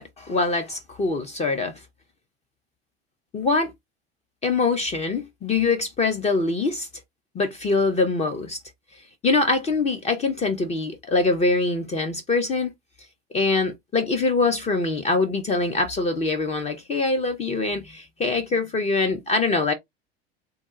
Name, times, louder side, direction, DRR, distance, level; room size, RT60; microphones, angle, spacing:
voice 1, 0.0-1.7 3.3-3.7 4.4-6.9 7.3-8.6 9.2-12.7 13.3-19.7, left 3 dB, 20° left, 0.7 m, -23 dB
3.6 x 2.2 x 3.0 m
figure-of-eight pair, 75°, 31 cm